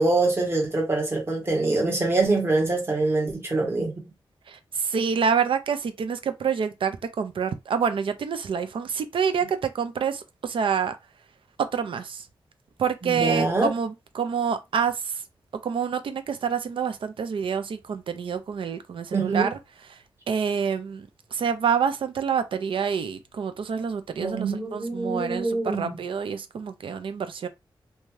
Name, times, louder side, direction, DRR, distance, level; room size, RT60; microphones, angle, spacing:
voice 1, 0.0-4.0 13.0-13.7 19.1-19.5 24.2-26.0, right 3 dB, 30° right, 1.3 m, -24 dB
voice 2, 4.5-11.0 11.6-12.3 12.8-15.2 15.6-19.6 20.3-27.5, right 6 dB, 80° right, 0.5 m, -27 dB
2.7 x 2.3 x 3.2 m
wide cardioid pair, 150°, 9 cm